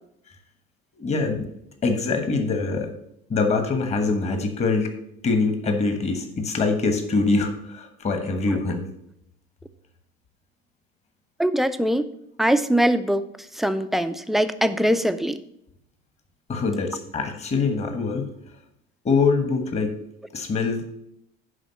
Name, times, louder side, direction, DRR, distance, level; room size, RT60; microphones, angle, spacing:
voice 1, 1.0-1.5 1.8-2.9 3.3-4.9 5.2-8.9 16.5-18.3 19.0-19.9 20.3-20.8, left 4 dB, 30° left, 6 dB, 1.4 m, -24 dB
voice 2, 11.4-12.1 12.4-13.2 13.6-15.4, equal, ahead, 10 dB, 0.4 m, -22 dB
10.5 x 3.7 x 7.0 m, 0.77 s
cardioid pair, 135°, 21 cm